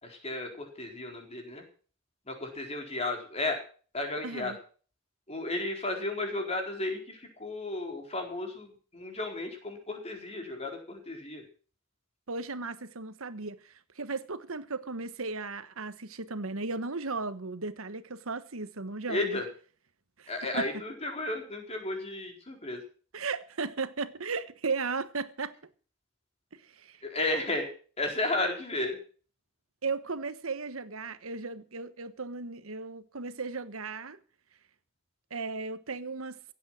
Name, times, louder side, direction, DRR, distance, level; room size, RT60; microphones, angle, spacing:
voice 1, 0.0-1.6 2.3-3.6 3.9-4.5 5.3-11.4 19.1-19.5 20.3-22.8 27.0-27.7 28.0-29.0, left 2 dB, 30° left, 4.2 m, -33 dB
voice 2, 4.2-4.6 12.3-19.4 20.2-20.7 23.1-25.5 26.5-27.0 29.8-34.2 35.3-36.4, right 4 dB, 75° right, 1.3 m, -36 dB
16.0 x 8.4 x 7.7 m
head